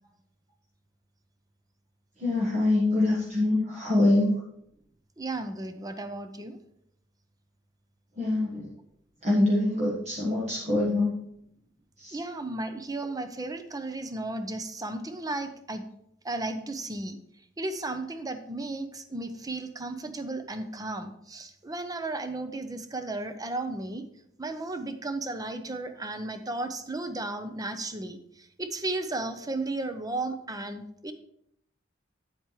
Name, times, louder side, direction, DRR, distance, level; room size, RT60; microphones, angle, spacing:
voice 1, 2.2-4.4 8.2-8.7 9.2-11.2 12.0-12.2, left 2 dB, 40° right, -4 dB, 1.4 m, -24 dB
voice 2, 5.2-6.6 12.1-15.9 16.2-17.2 17.6-24.0 24.4-28.2 28.6-31.1, right 2 dB, 20° right, 9 dB, 0.7 m, -34 dB
8.9 x 7.8 x 3.2 m, 0.73 s
head